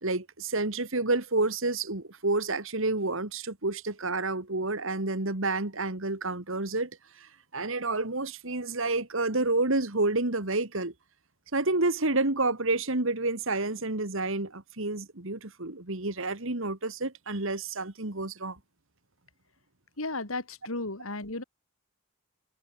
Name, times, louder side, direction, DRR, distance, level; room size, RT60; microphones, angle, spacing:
voice 1, 0.0-6.9 7.2-10.9 11.5-18.6, right 2 dB, 60° right, 2.2 m, -29 dB
voice 2, 20.0-21.4, left 2 dB, 70° left, 3.6 m, -34 dB
head